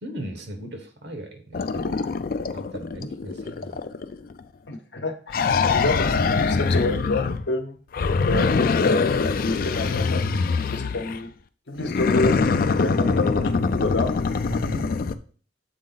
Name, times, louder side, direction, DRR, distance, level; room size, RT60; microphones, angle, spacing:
voice 1, 0.0-2.0 2.5-3.8 5.5-5.8 14.5-14.9, right 1 dB, 70° right, 6 dB, 1.2 m, -37 dB
sound 1, 1.5-4.4 5.3-7.5 7.9-11.2 11.8-15.2, left 4 dB, 55° left, 0.4 m, -23 dB
voice 2, 4.7-7.8 8.3-11.3 11.7-12.4 12.8-14.1, left 2 dB, 75° left, 6 dB, 0.8 m, -28 dB
7.6 x 4.1 x 3.9 m, 0.43 s
head